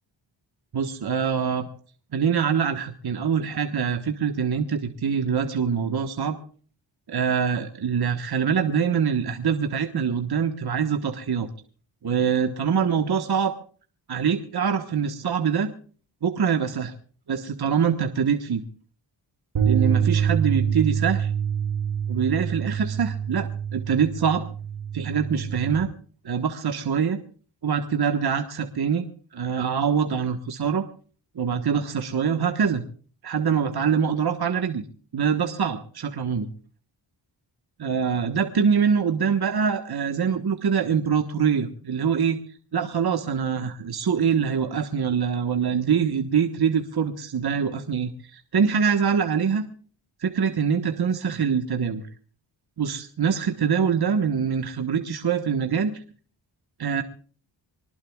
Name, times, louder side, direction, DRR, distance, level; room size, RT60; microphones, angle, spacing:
voice 1, 0.7-1.7 2.1-6.4 7.1-11.5 12.0-13.5 14.1-15.7 16.2-16.9 17.3-18.6 19.6-21.3 22.1-24.4 24.9-25.9 26.2-27.2 27.6-29.1 29.3-30.8 31.3-32.8 33.2-34.8 35.1-36.5 37.8-42.4 42.7-49.7 50.2-52.0 52.8-56.0 56.8-57.0, right 7 dB, 50° right, 6 dB, 1.4 m, -24 dB
sound 1, 19.6-25.8, right 8 dB, 85° right, 3.6 m, -26 dB
25.0 x 19.0 x 2.4 m, 0.43 s
cardioid pair, 70°, 48 cm